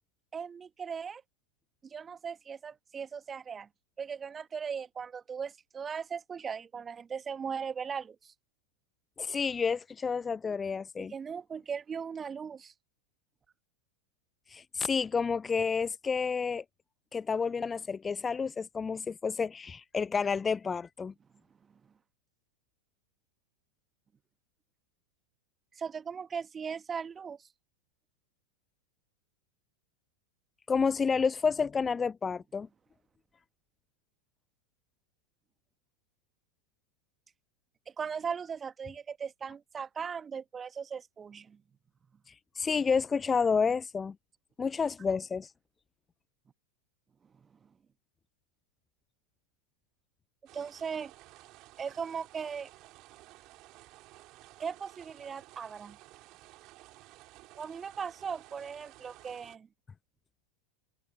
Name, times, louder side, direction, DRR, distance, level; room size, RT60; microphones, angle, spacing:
voice 1, 0.3-1.2 1.8-3.7 4.0-8.3 11.1-12.7 25.8-27.4 38.0-41.6 50.5-51.1 51.8-52.7 54.6-56.0 57.6-59.7, right 6 dB, 20° right, 1.8 m, -38 dB
voice 2, 9.2-11.1 14.5-16.6 17.1-21.1 30.7-32.7 42.3-44.1 44.6-45.5, left 5 dB, 15° left, 0.3 m, -30 dB
sound 1, 50.5-59.6, right 19 dB, 40° right, 4.0 m, -55 dB
figure-of-eight pair, 90°, 0 cm